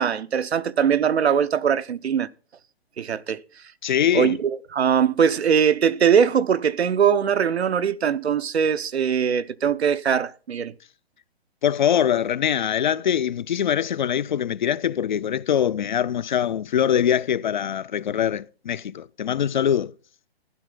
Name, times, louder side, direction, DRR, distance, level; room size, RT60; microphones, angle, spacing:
voice 1, 0.0-2.3 3.0-3.4 4.1-10.7, right 7 dB, 90° right, 0.8 m, -21 dB
voice 2, 3.8-4.4 11.6-19.9, left 9 dB, 50° left, 0.4 m, -23 dB
12.0 x 10.0 x 3.7 m
hypercardioid pair, 155°, 31 cm